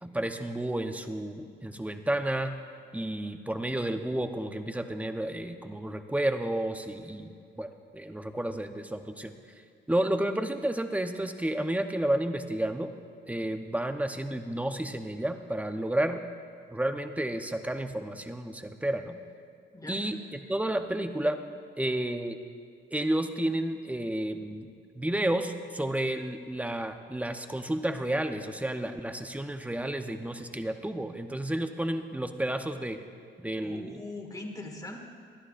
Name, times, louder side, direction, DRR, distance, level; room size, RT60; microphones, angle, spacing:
voice 1, 0.0-2.6 2.9-9.3 9.9-12.9 13.3-16.2 16.7-19.2 19.9-21.4 21.8-22.4 22.9-24.7 25.0-33.0 33.4-34.0, right 1 dB, 5° right, 7 dB, 0.8 m, -31 dB
voice 2, 33.6-35.0, left 2 dB, 20° left, 2 dB, 1.8 m, -41 dB
21.5 x 12.5 x 2.5 m, 2.3 s
cardioid pair, 90°, 20 cm